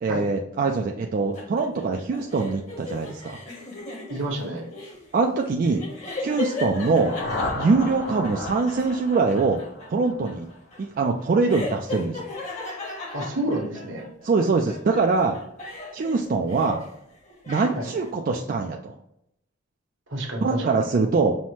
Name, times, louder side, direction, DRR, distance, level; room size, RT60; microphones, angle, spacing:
voice 1, 0.0-3.4 5.1-5.8 6.2-7.1 7.5-9.6 9.9-10.5 10.8-12.2 14.2-15.4 15.9-16.8 17.5-18.9 20.4-21.3, right 4 dB, 45° right, 2 dB, 0.3 m, -23 dB
sound 1, 1.3-14.3 14.7-17.0 17.2-18.1, left 2 dB, 35° left, 1.0 m, -37 dB
voice 2, 4.1-4.6 13.1-14.0 17.8-17.9 20.1-20.8, right 1 dB, 70° right, 0 dB, 1.1 m, -29 dB
sound 2, 6.6-10.6, left 2 dB, 55° left, 0.7 m, -34 dB
5.5 x 2.1 x 3.0 m, 0.79 s
head